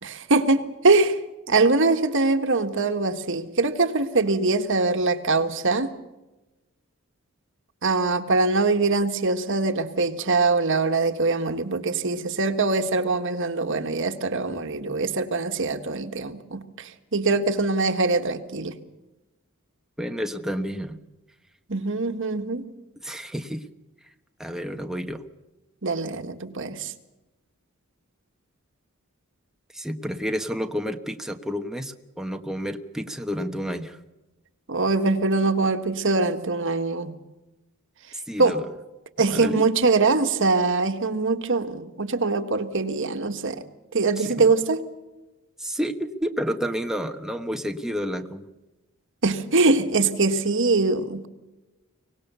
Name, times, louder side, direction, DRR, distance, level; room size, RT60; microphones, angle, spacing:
voice 1, 0.0-1.2 1.5-5.9 7.8-18.8 21.7-22.7 25.8-26.9 34.7-37.1 38.4-38.6 39.2-43.6 43.9-44.8 49.2-51.3, right 3 dB, 60° right, 8 dB, 1.6 m, -23 dB
voice 2, 20.0-21.0 23.0-23.7 24.4-25.2 29.7-34.0 38.1-38.7 39.3-39.6 44.2-44.5 45.6-48.5, equal, ahead, 5 dB, 1.2 m, -30 dB
24.5 x 18.5 x 6.9 m, 1.0 s
head